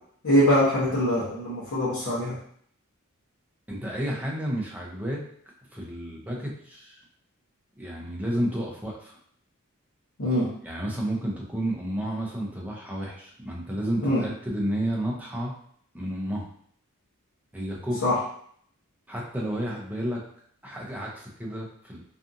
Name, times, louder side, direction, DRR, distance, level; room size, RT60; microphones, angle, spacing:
voice 1, 0.2-2.4 10.2-10.5 14.0-14.2 18.0-18.2, equal, 60° left, -9 dB, 0.8 m, -23 dB
voice 2, 3.7-5.2 5.7-7.0 7.8-9.2 10.6-15.5 15.9-16.5 17.5-18.0 19.1-20.2 20.6-22.0, equal, 5° right, -3 dB, 0.5 m, -31 dB
2.6 x 2.4 x 2.5 m, 0.62 s
head